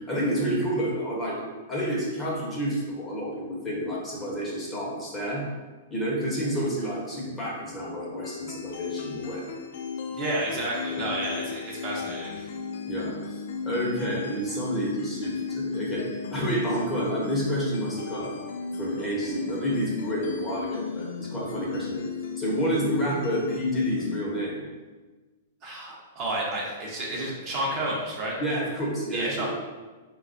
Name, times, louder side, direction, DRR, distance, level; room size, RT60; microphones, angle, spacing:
voice 1, 0.0-1.4 1.7-5.5 5.9-9.4 11.0-11.4 12.9-13.1 13.6-16.0 16.3-18.3 18.8-22.0 22.4-24.6 28.4-29.5, equal, 15° left, -5 dB, 1.0 m, -29 dB
sound 1, 8.2-24.2, left 5 dB, 65° left, 0.3 m, -35 dB
voice 2, 10.1-12.5 25.6-28.4 29.1-29.5, right 1 dB, 40° right, -4 dB, 0.8 m, -31 dB
4.0 x 2.3 x 2.6 m, 1.3 s
hypercardioid pair, 120°, 0 cm